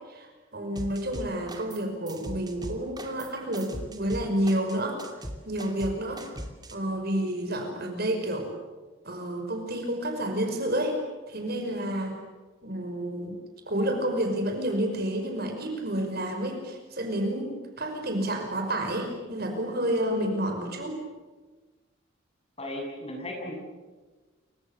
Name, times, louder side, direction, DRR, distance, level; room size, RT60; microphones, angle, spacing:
voice 1, 0.1-5.0 5.4-6.2 6.7-8.5 9.0-11.0 11.3-12.2 12.6-13.4 13.7-21.0, right 1 dB, 50° right, 4 dB, 5.5 m, -30 dB
sound 1, 0.7-1.8 2.1-6.7, right 1 dB, 20° right, 2.6 m, -39 dB
voice 2, 22.6-23.6, left 1 dB, 30° left, 1 dB, 7.2 m, -35 dB
29.5 x 24.5 x 7.3 m, 1.3 s
head